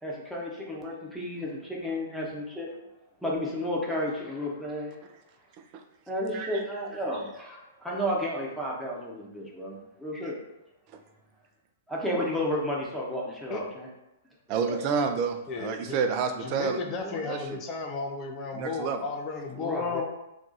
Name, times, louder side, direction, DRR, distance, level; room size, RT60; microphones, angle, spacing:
voice 1, 0.0-2.7 3.2-4.9 6.1-10.4 11.9-13.9 14.7-14.8 19.5-20.0, left 1 dB, ahead, -5 dB, 0.8 m, -32 dB
voice 2, 14.5-17.6 18.5-19.0, right 5 dB, 40° right, 6 dB, 0.4 m, -29 dB
voice 3, 15.5-16.0 16.4-20.0, left 4 dB, 30° left, 2 dB, 0.4 m, -34 dB
2.6 x 2.3 x 3.9 m, 0.89 s
figure-of-eight pair, 110°, 0 cm